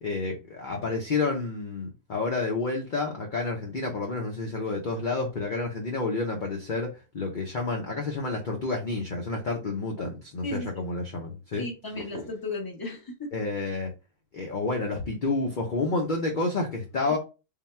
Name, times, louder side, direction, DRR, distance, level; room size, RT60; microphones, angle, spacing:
voice 1, 0.0-11.6 13.3-13.9 14.3-17.2, left 3 dB, 45° left, 0.8 m, -29 dB
voice 2, 10.4-10.8 11.6-13.3, left 2 dB, 20° left, 1.0 m, -35 dB
3.8 x 2.3 x 4.2 m
omnidirectional pair, 1.4 m